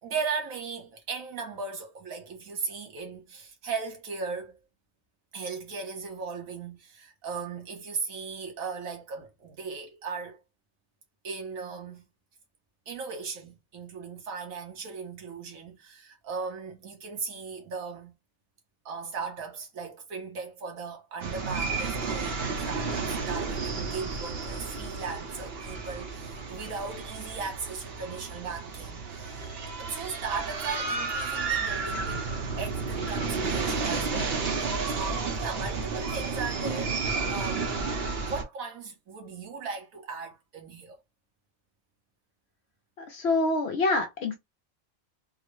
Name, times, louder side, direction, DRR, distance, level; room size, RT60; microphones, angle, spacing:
voice 1, 0.0-4.6 5.3-10.4 11.2-12.0 12.9-18.1 18.8-29.3 29.8-32.2 32.6-34.4 34.7-37.0 37.3-41.0, right 5 dB, 75° right, 1.4 m, -37 dB
sound 1, 21.2-38.4, right 4 dB, 50° right, 0.9 m, -32 dB
voice 2, 43.0-44.3, left 2 dB, 60° left, 0.8 m, -26 dB
3.7 x 2.0 x 3.1 m
omnidirectional pair, 1.5 m